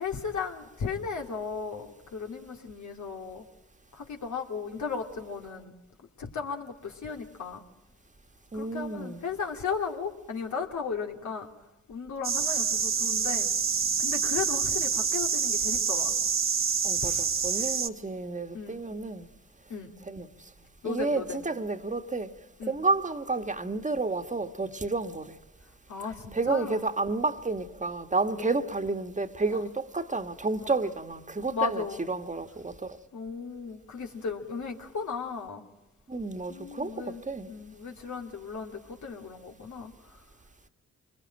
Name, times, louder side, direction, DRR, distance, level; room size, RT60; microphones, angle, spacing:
voice 1, 0.0-3.5 3.9-5.7 6.2-7.6 8.5-11.5 11.9-13.5 14.0-16.2 17.0-17.2 17.6-17.7 18.5-18.8 19.7-19.9 20.8-21.4 22.6-22.8 25.9-26.9 28.4-28.5 29.5-29.6 31.5-32.0 33.1-35.6 36.5-37.2 37.5-39.9, left 5 dB, 65° left, 2.8 m, -35 dB
voice 2, 8.5-9.2 16.8-19.3 20.1-20.3 20.8-22.3 22.6-25.4 26.3-33.0 36.1-37.5, right 3 dB, 25° right, 1.7 m, -31 dB
sound 1, 12.2-17.9, right 6 dB, 40° right, 1.1 m, -27 dB
26.0 x 21.0 x 9.0 m
supercardioid pair, 50°, 31 cm